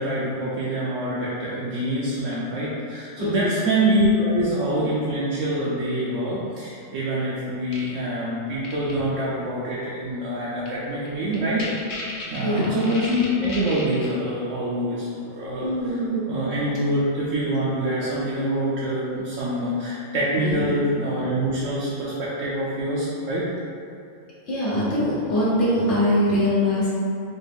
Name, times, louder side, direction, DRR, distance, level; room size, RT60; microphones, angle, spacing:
voice 1, 0.0-11.7 12.3-16.0 16.3-23.5, right 1 dB, 80° right, -7 dB, 0.9 m, -25 dB
voice 2, 3.2-3.5 12.4-12.7 15.6-16.3 20.4-20.7 24.5-26.9, left 1 dB, 70° left, -9 dB, 1.1 m, -23 dB
sound 1, 7.7-7.9 8.6-8.9 10.7-10.8 11.0-11.1 11.3-14.1, left 2 dB, 50° left, 0.8 m, -34 dB
4.1 x 2.4 x 3.4 m, 2.6 s
omnidirectional pair, 1.3 m